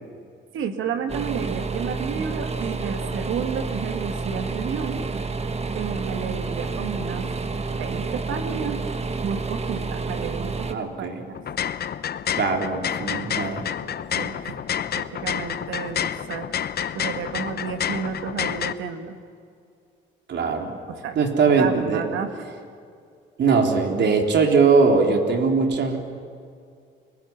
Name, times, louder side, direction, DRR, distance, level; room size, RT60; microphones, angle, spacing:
voice 1, 0.5-5.1 5.7-7.3 7.7-8.8 9.2-11.4 14.2-14.5 15.0-16.5 16.9-19.2 20.9-21.2 21.4-22.5, right 7 dB, 80° right, 6 dB, 2.2 m, -31 dB
sound 1, 1.1-10.7, right 4 dB, 30° right, 1.5 m, -29 dB
voice 2, 10.7-11.2 12.4-13.7 20.3-20.7 21.2-22.0 23.4-26.0, right 4 dB, 60° right, 2 dB, 3.7 m, -20 dB
sound 2, 11.3-18.7, left 9 dB, 55° left, 0.9 m, -29 dB
30.0 x 20.5 x 6.1 m, 2.3 s
cardioid pair, 90°, 20 cm